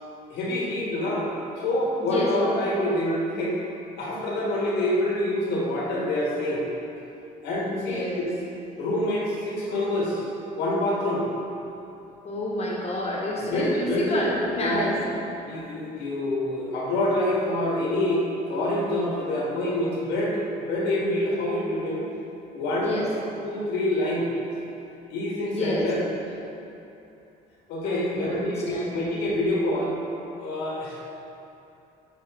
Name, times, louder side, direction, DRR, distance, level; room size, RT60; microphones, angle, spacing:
voice 1, 0.3-1.3 1.6-3.6 4.0-6.7 7.4-8.1 8.8-10.3 10.6-11.3 13.5-14.2 14.6-14.9 15.4-18.2 18.5-22.0 22.5-23.0 23.4-24.3 25.1-26.0 27.7-30.0 30.4-31.0, left 1 dB, 90° left, -4 dB, 1.4 m, -26 dB
voice 2, 7.6-8.3 12.2-15.0 22.8-23.1 25.4-25.9 27.8-29.0, left 1 dB, 40° left, -4 dB, 1.4 m, -29 dB
6.5 x 4.9 x 3.5 m, 2.8 s
cardioid pair, 110°, 17 cm